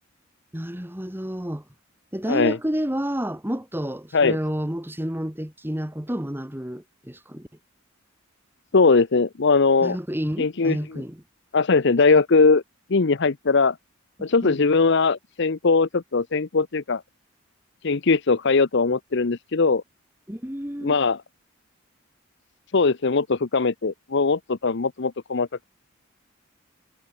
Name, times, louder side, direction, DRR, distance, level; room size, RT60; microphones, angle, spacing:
voice 1, 0.5-1.6 2.1-7.5 9.8-11.2 14.2-14.6 20.3-21.0, equal, 10° right, 2.0 m, -30 dB
voice 2, 8.7-10.0 10.4-11.0 11.5-12.6 12.9-13.8 14.2-17.0 17.8-19.8 20.8-21.2 22.7-25.6, left 4 dB, 55° left, 0.7 m, -20 dB
head